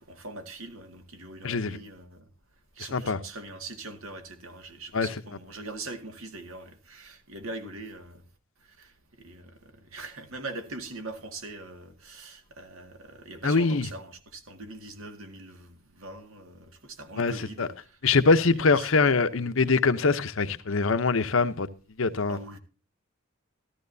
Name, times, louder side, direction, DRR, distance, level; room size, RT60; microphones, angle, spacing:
voice 1, 0.0-2.2 2.8-8.2 8.7-18.0 18.5-19.6 22.3-22.6, right 2 dB, 80° right, 2.0 m, -42 dB
voice 2, 1.4-1.8 2.9-3.2 4.9-5.1 13.4-13.9 17.2-17.3 17.6-17.7 18.0-21.7 22.0-22.4, left 4 dB, 70° left, 0.8 m, -23 dB
14.0 x 13.5 x 2.7 m
head